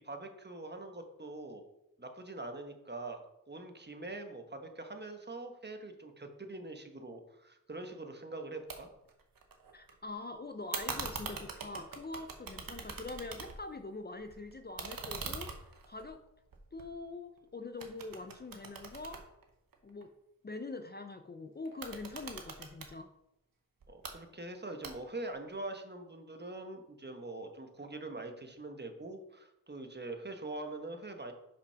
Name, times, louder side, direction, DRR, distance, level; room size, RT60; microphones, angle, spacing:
voice 1, 0.0-1.6 2.0-3.2 3.5-8.9 23.9-31.3, right 2 dB, 30° right, 5 dB, 1.3 m, -43 dB
sound 1, 8.7-8.8 9.1-9.9 10.7-13.8 14.1-17.4 17.8-20.0 21.7-22.9 23.8-24.1 24.8-25.3, right 5 dB, 80° right, 1.2 m, -43 dB
voice 2, 9.7-15.5 15.9-16.2 16.7-19.2 19.8-20.1 20.4-23.1, left 3 dB, 30° left, 7 dB, 0.6 m, -44 dB
5.8 x 5.3 x 5.8 m, 0.83 s
cardioid pair, 60°, 34 cm